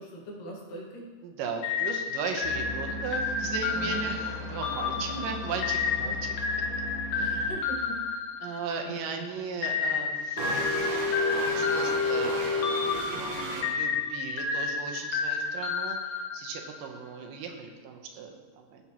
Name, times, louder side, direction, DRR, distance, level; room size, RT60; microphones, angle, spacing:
voice 1, 0.0-1.1 3.7-4.0 5.1-5.2 6.1-6.2 7.2-8.0 8.4-9.3, right 1 dB, 90° left, -2 dB, 3.3 m, -42 dB
voice 2, 1.2-6.2 7.1-7.5 8.4-13.0 13.3-18.8, right 5 dB, 85° right, 3 dB, 2.5 m, -37 dB
sound 1, 1.6-9.1 9.6-16.9, left 5 dB, 70° left, 1.5 m, -31 dB
sound 2, 2.4-7.5, left 1 dB, 40° right, 2.1 m, -39 dB
sound 3, 10.4-13.6, left 2 dB, 65° right, 2.5 m, -29 dB
15.0 x 6.1 x 2.9 m, 1.4 s
omnidirectional pair, 3.8 m